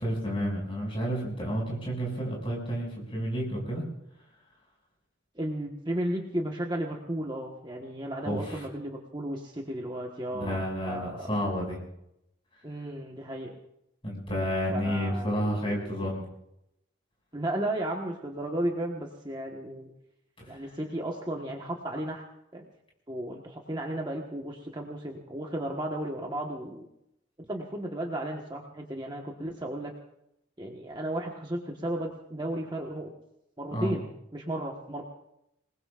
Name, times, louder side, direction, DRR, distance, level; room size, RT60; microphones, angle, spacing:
voice 1, 0.0-3.8 8.2-8.6 10.3-11.8 14.0-16.3 20.4-20.7 33.7-33.9, equal, 25° left, -1 dB, 6.3 m, -31 dB
voice 2, 5.3-11.4 12.6-13.5 14.7-16.1 17.3-19.9 20.5-22.2 22.5-22.7 23.1-26.9 27.5-29.9 30.6-33.1 33.6-35.0, right 1 dB, 20° right, 0 dB, 1.3 m, -34 dB
27.5 x 20.0 x 2.5 m, 0.80 s
head